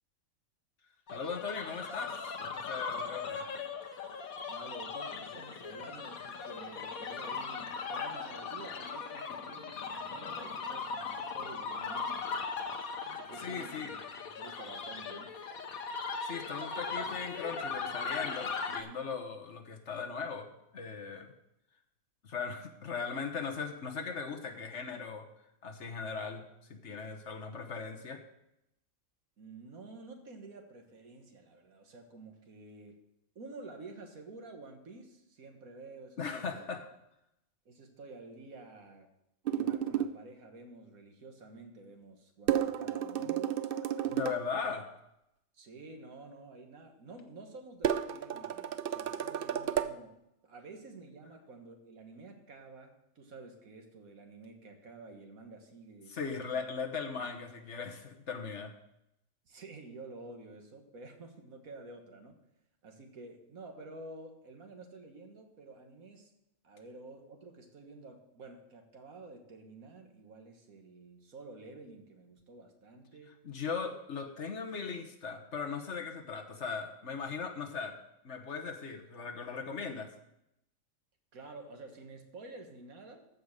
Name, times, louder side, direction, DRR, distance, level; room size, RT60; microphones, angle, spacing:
sound 1, 1.1-18.8, left 5 dB, 85° left, 1.4 m, -39 dB
voice 1, 1.1-3.5 13.4-13.9 16.2-21.3 22.2-25.3 25.6-26.4 26.7-28.2 36.2-36.8 44.1-44.8 56.1-58.7 73.4-78.0 78.2-80.1, left 5 dB, 55° left, 4 dB, 1.4 m, -38 dB
voice 2, 4.5-14.0 14.4-15.3 29.4-33.0 33.4-36.7 37.7-39.1 39.5-43.6 44.5-44.6 45.5-56.2 56.5-56.6 59.5-62.4 62.8-66.3 66.6-73.4 81.3-83.3, right 3 dB, 80° right, 4 dB, 1.9 m, -50 dB
sound 2, 39.5-40.2 42.5-44.4 47.8-49.9, right 10 dB, 60° right, 0.6 m, -32 dB
14.0 x 5.3 x 6.5 m, 0.84 s
omnidirectional pair, 1.5 m